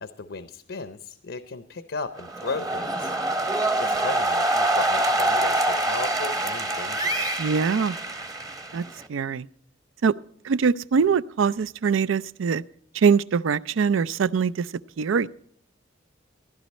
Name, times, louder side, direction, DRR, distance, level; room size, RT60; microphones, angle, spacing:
voice 1, 0.0-3.1 3.8-7.4, left 4 dB, 70° left, 11 dB, 0.6 m, -35 dB
sound 1, 2.2-9.1, right 1 dB, 20° right, 0.8 m, -25 dB
voice 2, 7.4-8.0 8.7-8.8 9.1-9.5 10.0-10.1 10.4-12.6 12.9-14.7 15.0-15.3, right 6 dB, 85° right, 18 dB, 0.4 m, -22 dB
15.0 x 11.0 x 4.2 m, 0.63 s
head